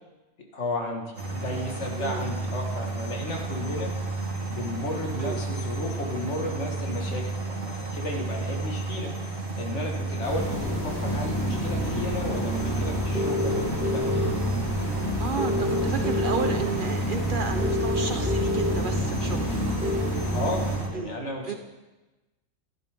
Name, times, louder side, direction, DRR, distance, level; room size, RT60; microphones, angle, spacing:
voice 1, 0.5-3.9 4.5-9.1 9.6-14.3 15.4-15.8 20.3-21.6, left 2 dB, 60° left, 1 dB, 1.9 m, -33 dB
sound 1, 1.1-20.9, right 3 dB, 85° right, 2.4 m, -32 dB
sound 2, 10.2-20.7, left 1 dB, 15° left, 4.3 m, -30 dB
sound 3, 13.1-14.3 15.4-16.5 17.6-18.7 19.8-20.0, left 2 dB, 5° right, 1.4 m, -28 dB
voice 2, 15.2-19.6 20.9-21.2 21.5-21.6, right 5 dB, 50° right, 6 dB, 0.7 m, -32 dB
12.0 x 11.0 x 3.5 m, 1.1 s
omnidirectional pair, 1.4 m